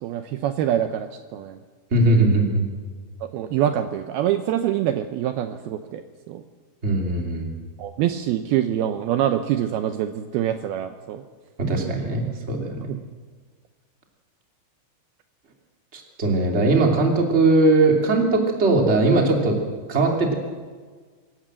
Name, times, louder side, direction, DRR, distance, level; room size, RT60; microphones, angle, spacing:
voice 1, 0.0-1.6 3.3-6.0 6.3-6.4 7.8-11.2 11.8-11.9 12.9-13.0, right 11 dB, 90° right, 8 dB, 2.1 m, -25 dB
voice 2, 1.9-2.6 6.8-7.4 11.6-12.9 15.9-19.6 19.9-20.3, right 2 dB, 20° right, 1 dB, 1.9 m, -20 dB
25.0 x 14.5 x 7.6 m, 1.5 s
omnidirectional pair, 5.5 m